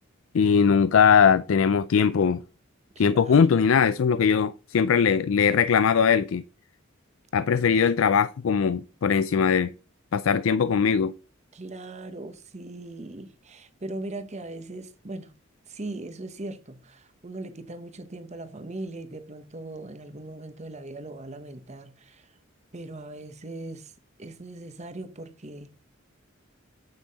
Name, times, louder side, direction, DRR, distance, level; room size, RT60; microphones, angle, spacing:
voice 1, 0.3-2.4 3.0-6.4 7.3-9.7 10.1-11.1, left 6 dB, 75° left, 0.4 m, -20 dB
voice 2, 2.9-3.5 7.5-8.0 11.5-15.3 15.7-22.4 22.7-23.9 24.2-25.7, right 2 dB, 35° right, 1.0 m, -39 dB
8.9 x 5.7 x 4.0 m
head